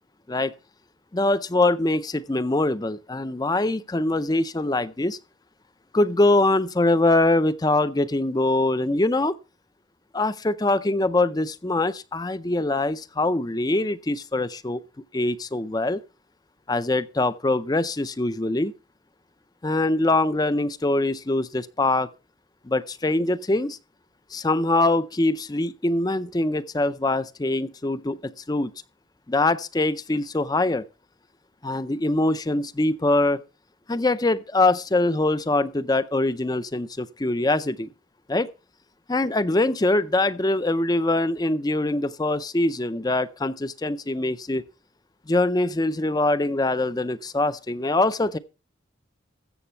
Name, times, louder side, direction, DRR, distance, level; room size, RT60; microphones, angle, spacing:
voice 1, 1.1-5.2 5.9-9.4 10.1-14.8 15.1-16.0 16.7-18.7 19.6-22.1 22.6-23.8 24.3-28.7 29.3-30.8 31.6-33.4 33.9-37.9 38.3-38.5 39.1-44.6 45.3-48.4, left 2 dB, 20° left, 0.5 m, -23 dB
14.0 x 7.6 x 4.4 m
head